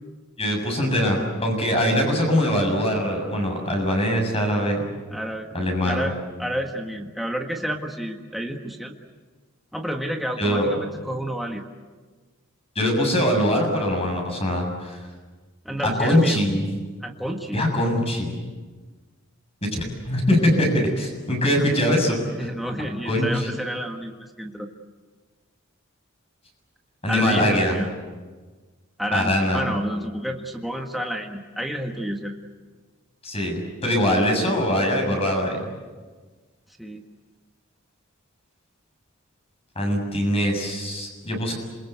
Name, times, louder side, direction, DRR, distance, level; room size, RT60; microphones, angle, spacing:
voice 1, 0.4-4.8 5.5-6.1 10.4-10.7 12.8-15.0 16.0-16.7 17.5-18.4 19.7-20.7 21.0-22.2 23.1-23.5 27.0-27.8 29.1-29.7 33.2-35.6 39.8-41.5, equal, 30° left, 2 dB, 7.1 m, -22 dB
voice 2, 5.1-5.5 5.8-8.9 9.7-11.6 15.6-16.4 17.0-17.6 22.4-24.7 27.1-27.9 29.0-32.3 36.8-37.0, equal, ahead, 1 dB, 1.6 m, -30 dB
27.5 x 22.5 x 8.3 m, 1.4 s
head